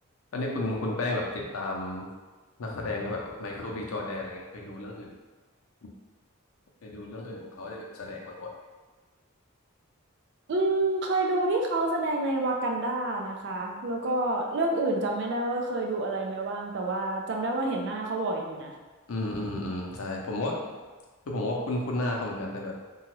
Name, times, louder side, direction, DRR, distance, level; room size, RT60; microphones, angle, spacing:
voice 1, 0.3-2.1 2.6-5.1 5.8-5.9 6.8-8.5 19.1-20.7 21.3-22.8, left 2 dB, 85° left, -1 dB, 0.6 m, -33 dB
voice 2, 10.5-18.7, right 2 dB, 60° right, 0 dB, 0.4 m, -28 dB
2.8 x 2.3 x 3.0 m, 1.3 s
head